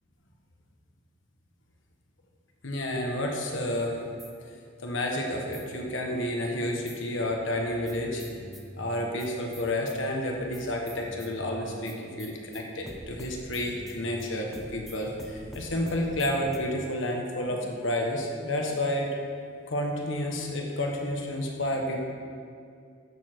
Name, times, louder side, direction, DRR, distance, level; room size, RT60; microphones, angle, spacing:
voice 1, 2.6-4.0 4.4-8.2 8.8-19.2 19.7-22.0, left 1 dB, 65° left, 1 dB, 1.4 m, -30 dB
sound 1, 4.2-5.1 5.5-7.1 7.5-16.6, equal, ahead, 0.9 m, -46 dB
14.0 x 6.9 x 4.6 m, 2.3 s
head